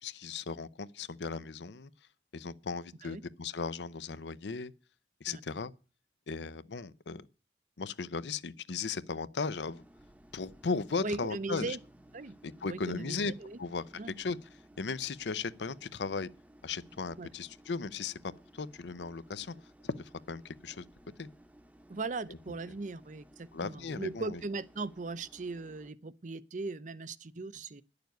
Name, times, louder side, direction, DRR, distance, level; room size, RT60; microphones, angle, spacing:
voice 1, 0.0-1.9 2.3-4.7 5.2-5.7 6.3-7.2 7.8-9.8 10.3-11.8 12.4-13.3 13.6-14.4 14.8-16.3 16.6-18.2 18.5-20.9 21.2-21.3 22.5-22.6 23.5-24.4, left 4 dB, 80° left, 0.7 m, -37 dB
sound 1, 9.4-25.9, right 1 dB, 10° right, 0.8 m, -59 dB
voice 2, 11.0-11.8 12.1-12.3 12.6-13.6 13.9-14.1 17.2-17.3 21.9-27.8, right 3 dB, 45° right, 0.6 m, -38 dB
10.5 x 6.8 x 9.2 m
head